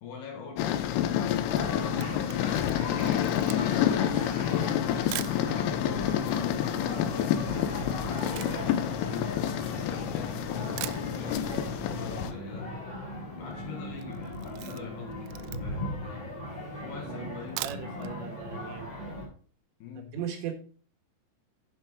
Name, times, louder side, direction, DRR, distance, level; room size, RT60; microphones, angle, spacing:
voice 1, 0.0-3.3 3.8-7.4 8.0-12.9 13.4-16.4 16.8-18.3 19.8-20.2, left 6 dB, 65° left, 3.4 m, -44 dB
sound 1, 0.6-12.3, left 11 dB, 90° left, 2.4 m, -29 dB
sound 2, 1.5-19.3, left 1 dB, 10° left, 2.9 m, -38 dB
Camera, 1.8-5.4 6.1-6.2 6.4-10.1 10.5-10.6 10.8-11.6 11.9-12.0 12.3-12.4 12.6-13.0 13.3-13.6 13.9-15.9 16.4-16.5 17.3-18.1 18.5-18.6 18.9-19.0, right 17 dB, 85° right, 3.1 m, -42 dB
voice 2, 16.9-18.9 20.1-20.5, right 9 dB, 70° right, 3.4 m, -38 dB
8.9 x 6.6 x 4.6 m
omnidirectional pair, 5.7 m